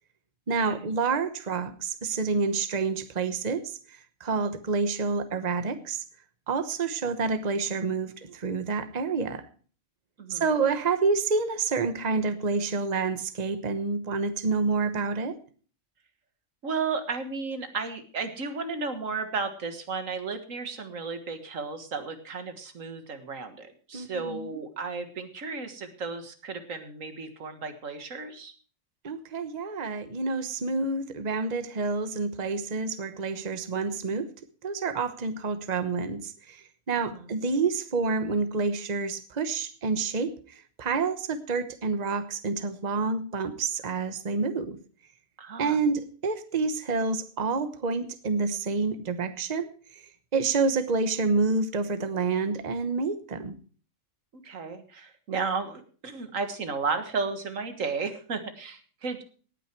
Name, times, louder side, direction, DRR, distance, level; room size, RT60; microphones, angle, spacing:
voice 1, 0.5-6.0 6.5-9.4 10.3-15.4 23.9-24.6 29.0-34.3 34.6-44.8 45.6-50.0 50.3-53.6, right 4 dB, 35° right, 10 dB, 1.1 m, -28 dB
voice 2, 16.6-28.5 37.1-37.3 45.4-45.8 54.4-59.2, right 4 dB, 90° right, 8 dB, 2.0 m, -33 dB
18.0 x 9.2 x 4.6 m, 0.42 s
omnidirectional pair, 1.3 m